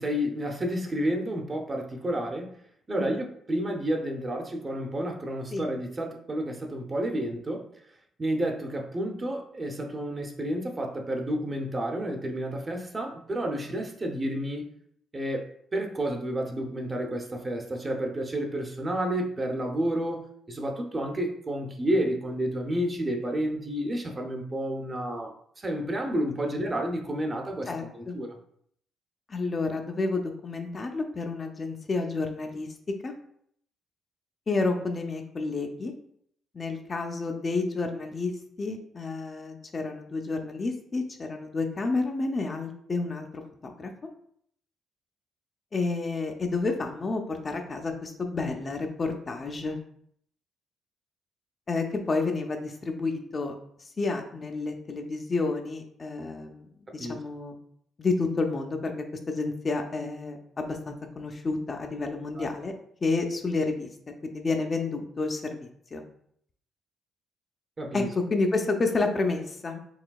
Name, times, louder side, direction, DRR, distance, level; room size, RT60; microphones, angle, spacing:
voice 1, 0.0-2.6 2.9-7.7 8.2-14.7 15.1-27.7 27.9-28.3 57.0-57.2 62.4-62.5 67.8-68.1, right 1 dB, 30° right, 3 dB, 0.7 m, -30 dB
voice 2, 27.7-28.2 29.3-32.7 33.0-33.1 34.5-35.9 36.5-38.3 38.6-43.9 45.7-49.8 51.7-53.6 54.0-57.6 58.0-62.7 63.0-63.9 64.2-66.0 67.9-69.8, left 3 dB, 35° left, 4 dB, 0.6 m, -30 dB
4.8 x 3.3 x 2.3 m, 0.66 s
cardioid pair, 90°, 0 cm